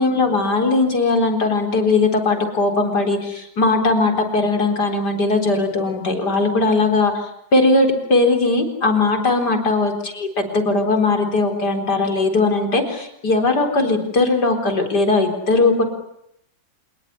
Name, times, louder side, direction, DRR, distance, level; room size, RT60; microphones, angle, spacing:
voice 1, 0.0-7.1 7.5-15.8, left 3 dB, 60° left, 5 dB, 4.6 m, -19 dB
27.5 x 19.5 x 9.9 m, 0.77 s
omnidirectional pair, 2.0 m